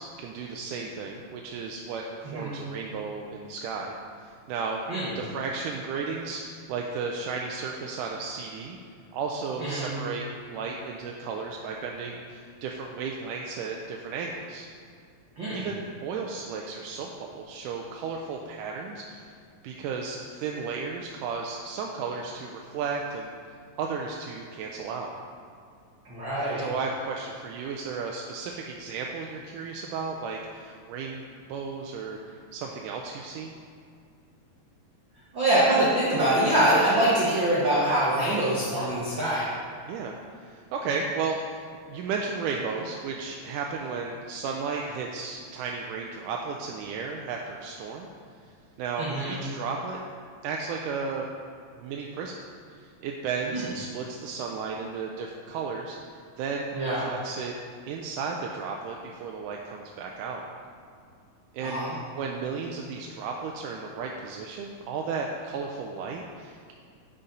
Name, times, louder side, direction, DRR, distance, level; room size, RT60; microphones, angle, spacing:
voice 1, 0.0-4.8 5.2-8.8 9.1-14.7 15.5-19.3 19.6-23.3 23.8-25.1 26.6-31.2 31.5-33.5 39.8-48.1 48.8-50.0 50.4-51.3 51.8-52.4 52.7-56.0 56.4-57.5 57.9-60.4 61.5-61.8 62.1-66.7, right 5 dB, 85° right, 0 dB, 2.1 m, -34 dB
voice 2, 9.6-9.9 15.4-15.6 26.0-26.7 35.3-39.5 49.0-49.3 53.5-53.6 56.7-57.0 61.6-61.9, right 1 dB, 50° right, -8 dB, 1.6 m, -24 dB
10.0 x 5.6 x 3.9 m, 2.2 s
omnidirectional pair, 3.7 m